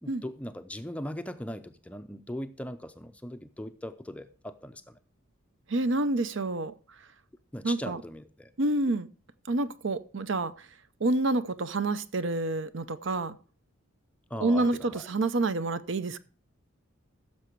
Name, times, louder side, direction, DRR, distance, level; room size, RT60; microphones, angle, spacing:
voice 1, 0.0-5.0 7.5-8.5 14.3-15.0, left 1 dB, 5° left, 0.5 m, -39 dB
voice 2, 5.7-6.7 7.6-8.0 8.6-9.1 9.5-10.7 11.0-13.4 14.4-16.2, right 2 dB, 60° right, 0.6 m, -28 dB
15.0 x 6.7 x 4.5 m
head